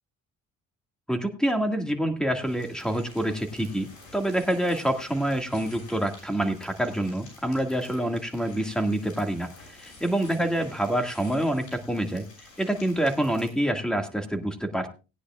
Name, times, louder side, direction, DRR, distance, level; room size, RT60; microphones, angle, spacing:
voice 1, 1.1-12.2 12.6-14.9, right 1 dB, ahead, 6 dB, 2.0 m, -27 dB
sound 1, 2.4-13.5, left 3 dB, 80° left, 7.2 m, -50 dB
18.0 x 9.9 x 2.4 m, 0.31 s
cardioid pair, 90°, 30 cm